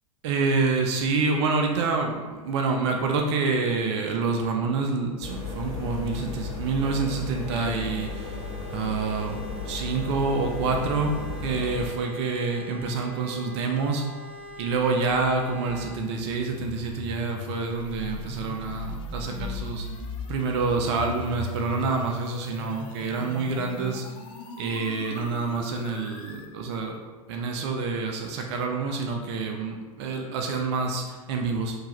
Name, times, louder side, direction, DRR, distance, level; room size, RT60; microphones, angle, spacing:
voice 1, 0.2-8.3 8.7-9.4 9.7-11.1 11.4-14.0 14.6-19.9 20.3-24.0 24.6-27.0 27.3-31.8, right 4 dB, 50° right, 2 dB, 0.4 m, -27 dB
sound 1, 5.2-11.9, left 4 dB, 45° left, 1.5 m, -35 dB
sound 2, 7.4-15.9, left 1 dB, ahead, 1.1 m, -44 dB
sound 3, 14.4-26.5, left 3 dB, 25° left, 0.4 m, -38 dB
3.6 x 2.7 x 2.9 m, 1.5 s
figure-of-eight pair, 85°, 19 cm